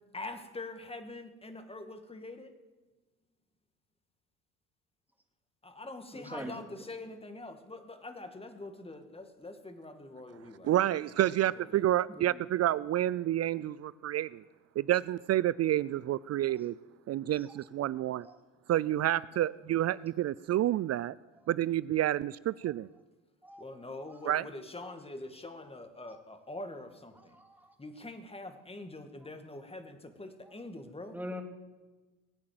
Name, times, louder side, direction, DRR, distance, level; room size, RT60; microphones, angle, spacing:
voice 1, 0.1-2.5 5.6-11.8 23.6-27.4 27.8-31.2, left 2 dB, 15° left, 7 dB, 2.1 m, -44 dB
voice 2, 6.1-6.7 12.1-12.4 17.4-17.6 18.2-18.4 23.4-23.6 24.1-24.2 27.3-27.7 31.1-31.4, equal, 5° right, 3 dB, 2.7 m, -43 dB
voice 3, 10.6-14.4 14.8-16.8 17.1-18.3 18.7-21.1 21.5-22.9 24.3-24.4, right 13 dB, 40° right, 19 dB, 0.4 m, -29 dB
20.0 x 8.5 x 7.7 m, 1.2 s
hypercardioid pair, 70°, 42 cm